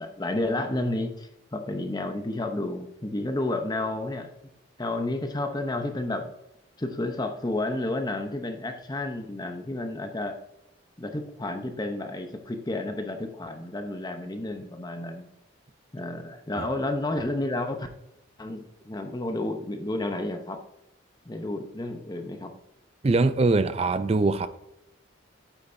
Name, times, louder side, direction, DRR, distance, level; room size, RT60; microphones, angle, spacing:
voice 1, 0.0-4.3 4.8-6.3 6.8-10.4 11.0-15.3 15.9-17.9 18.4-20.6 21.3-22.5, left 2 dB, 20° left, 6 dB, 0.7 m, -31 dB
voice 2, 23.0-24.5, right 3 dB, 30° right, 13 dB, 0.4 m, -22 dB
8.7 x 8.1 x 2.6 m, 0.85 s
head